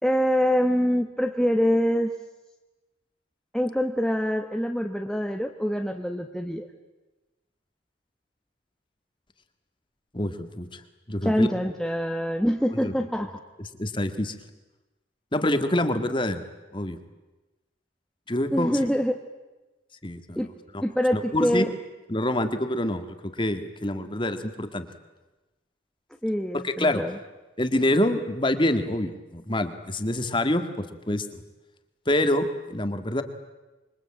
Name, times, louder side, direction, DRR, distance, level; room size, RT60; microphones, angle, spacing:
voice 1, 0.0-2.1 3.5-6.7 11.2-13.3 18.5-19.1 20.3-20.5 20.8-21.7 26.2-27.1, equal, 5° left, 3 dB, 1.0 m, -25 dB
voice 2, 10.1-10.8 11.1-11.5 12.8-12.9 13.8-14.4 15.3-16.4 16.7-17.0 18.3-18.8 20.0-20.5 21.1-21.7 22.1-24.9 26.6-27.0 27.6-31.4 32.1-33.2, left 1 dB, 25° left, 9 dB, 1.8 m, -26 dB
26.0 x 23.5 x 8.8 m, 1.1 s
head